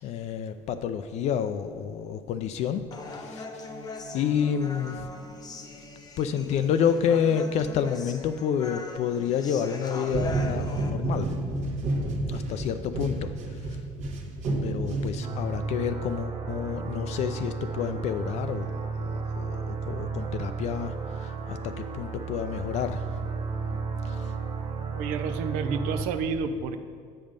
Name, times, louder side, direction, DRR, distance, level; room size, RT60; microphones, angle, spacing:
voice 1, 0.0-3.7 4.1-5.1 6.2-11.3 12.3-13.8 14.5-23.2 24.0-24.3, left 8 dB, 55° left, 9 dB, 0.4 m, -29 dB
Human voice, 2.9-10.9, left 3 dB, 30° left, 0.8 m, -41 dB
sound 1, 10.1-15.6, right 2 dB, 60° right, 1.1 m, -30 dB
sound 2, 15.2-26.1, right 5 dB, 35° right, 0.8 m, -33 dB
voice 2, 24.9-26.8, right 5 dB, 80° right, 8 dB, 0.5 m, -30 dB
7.7 x 5.4 x 5.1 m, 2.1 s
cardioid pair, 115°, 14 cm